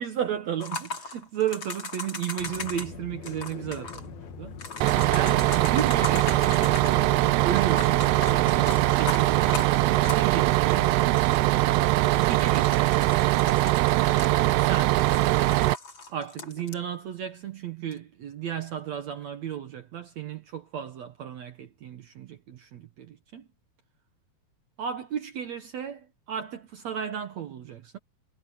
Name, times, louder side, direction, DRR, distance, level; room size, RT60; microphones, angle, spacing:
voice 1, 0.0-4.6 4.9-6.8 7.4-9.7 10.1-11.1 12.2-12.9 14.0-15.0 16.1-23.5 24.8-28.0, right 9 dB, 65° right, 1.7 m, -34 dB
sound 1, 0.6-2.9 3.2-4.1 4.6-7.0 7.5-10.5 10.8-10.9 11.1-11.5 12.0-14.6 14.9-16.8 17.9-18.0, left 4 dB, 35° left, 3.0 m, -38 dB
sound 2, 2.4-9.0, left 7 dB, 65° left, 3.5 m, -42 dB
Bus, 4.8-15.7, right 17 dB, 90° right, 2.9 m, -22 dB
omnidirectional pair, 4.6 m